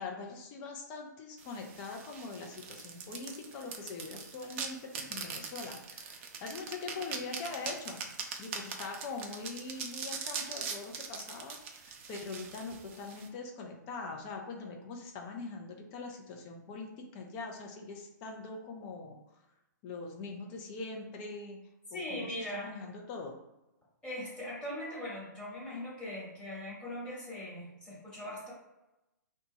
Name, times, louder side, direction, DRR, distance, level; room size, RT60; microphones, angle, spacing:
voice 1, 0.0-8.0 8.4-19.4 19.8-21.6 21.9-23.4, left 3 dB, 30° left, 2 dB, 0.5 m, -43 dB
sound 1, 1.4-13.3, right 5 dB, 40° right, 0.5 m, -42 dB
voice 2, 21.9-22.7 24.0-28.5, left 1 dB, 10° left, -7 dB, 1.3 m, -40 dB
2.9 x 2.2 x 2.6 m, 0.95 s
figure-of-eight pair, 125°, 10 cm